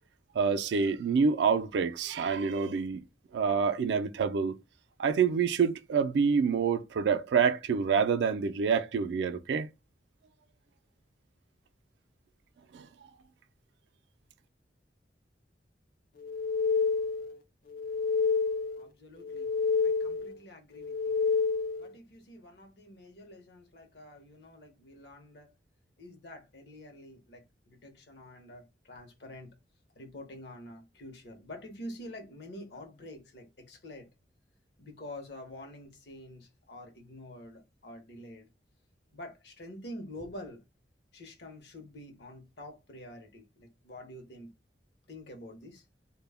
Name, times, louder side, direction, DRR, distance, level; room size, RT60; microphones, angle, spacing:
voice 1, 0.3-3.0 3.3-4.6 5.0-9.7 12.7-12.9, right 6 dB, 75° right, 0.3 m, -27 dB
sound 1, 16.2-17.4 17.7-18.9 19.2-20.4 20.8-21.9, left 5 dB, 50° left, 0.3 m, -29 dB
voice 2, 18.8-19.5 19.8-21.2 21.8-25.5 26.0-29.6 30.0-34.1 34.8-38.5 39.1-40.6 41.1-44.5 45.1-45.8, left 1 dB, 65° left, 0.7 m, -47 dB
2.2 x 2.0 x 3.3 m
head